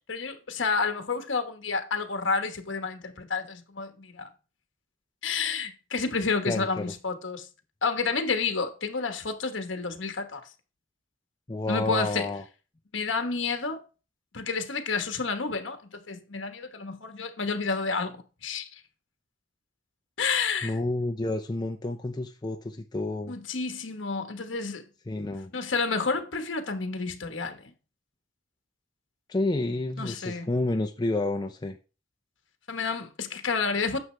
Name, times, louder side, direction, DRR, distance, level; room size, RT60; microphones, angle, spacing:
voice 1, 0.1-4.3 5.2-7.5 7.8-10.4 11.7-12.3 12.9-13.8 14.3-18.7 20.2-20.8 23.3-24.8 25.5-27.6 30.0-30.5 32.7-34.0, left 4 dB, 70° left, 1.2 m, -30 dB
voice 2, 6.5-6.9 11.5-12.4 20.6-23.4 25.1-25.5 29.3-31.8, left 2 dB, 20° left, 0.5 m, -30 dB
9.3 x 6.6 x 3.2 m
head